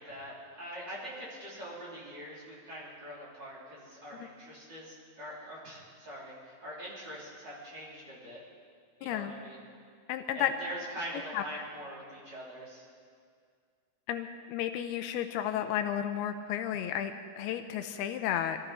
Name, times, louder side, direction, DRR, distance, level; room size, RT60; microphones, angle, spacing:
voice 1, 0.0-8.4 9.0-9.6 10.3-12.9, equal, 25° right, -7 dB, 4.0 m, -43 dB
voice 2, 9.0-9.3 10.1-10.5 11.3-11.6 14.1-18.6, left 10 dB, 85° left, 8 dB, 2.6 m, -33 dB
22.5 x 14.0 x 4.4 m, 2.1 s
omnidirectional pair, 4.6 m